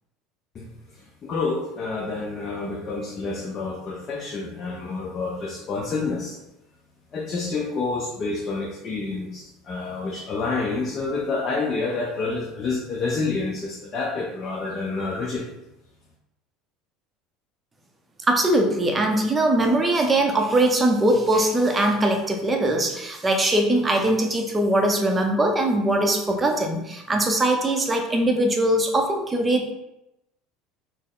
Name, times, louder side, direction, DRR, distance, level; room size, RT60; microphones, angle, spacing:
voice 1, 0.5-6.4 7.1-15.4, left 3 dB, 35° left, -2 dB, 0.6 m, -28 dB
voice 2, 18.3-29.7, right 1 dB, 15° right, 3 dB, 0.6 m, -21 dB
4.3 x 2.0 x 3.7 m, 0.91 s
supercardioid pair, 125°, 0 cm